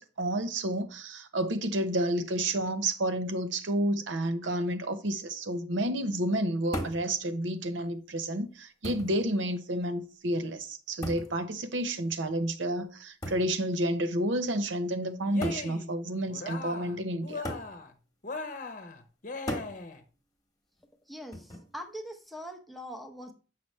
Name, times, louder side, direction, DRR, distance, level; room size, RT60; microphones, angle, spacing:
voice 1, 0.0-17.4, right 1 dB, 75° right, 0.8 m, -30 dB
sound 1, 6.7-7.1 8.1-8.2 8.8-9.2 11.0-11.4 13.2-13.5 14.6-14.7 15.4-15.7 17.4-17.7 19.5-19.8 21.3-21.7, equal, 20° left, 1.3 m, -36 dB
Cheering, 15.2-15.9 16.3-17.0 17.2-17.9 18.2-20.0, left 3 dB, 45° left, 0.9 m, -39 dB
voice 2, 21.1-23.3, equal, ahead, 0.8 m, -42 dB
7.7 x 5.8 x 3.2 m
head